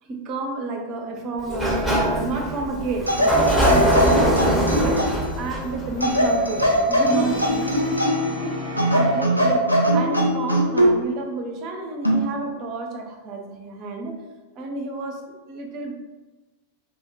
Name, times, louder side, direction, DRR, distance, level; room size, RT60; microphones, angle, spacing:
voice 1, 0.0-5.0 5.3-8.6 8.9-14.2 14.6-15.9, right 3 dB, 40° right, 2 dB, 0.4 m, -30 dB
Sliding door, 1.4-7.1, right 1 dB, 5° left, 0.7 m, -23 dB
sound 1, 3.1-5.3 6.0-8.4 8.8-11.0 12.0-12.3, equal, 90° left, 0.4 m, -21 dB
Brass instrument, 6.0-9.8, left 1 dB, 70° left, 1.2 m, -33 dB
2.2 x 2.1 x 3.1 m, 1.2 s
figure-of-eight pair, 90°, 0 cm